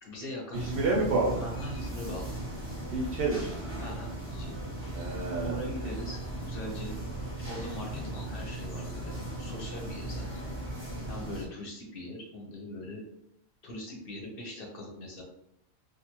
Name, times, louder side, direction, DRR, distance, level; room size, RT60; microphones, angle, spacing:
voice 1, 0.0-0.6 1.4-2.3 3.8-4.5 5.4-7.0 7.4-10.4 11.1-13.0 13.6-15.2, left 1 dB, 50° left, -1 dB, 0.8 m, -41 dB
sound 1, 0.5-11.4, right 1 dB, 15° right, 0.6 m, -37 dB
voice 2, 0.5-1.4 2.9-3.5 4.9-5.6, right 3 dB, 65° right, -2 dB, 0.6 m, -29 dB
2.5 x 2.3 x 2.9 m, 0.80 s
omnidirectional pair, 1.3 m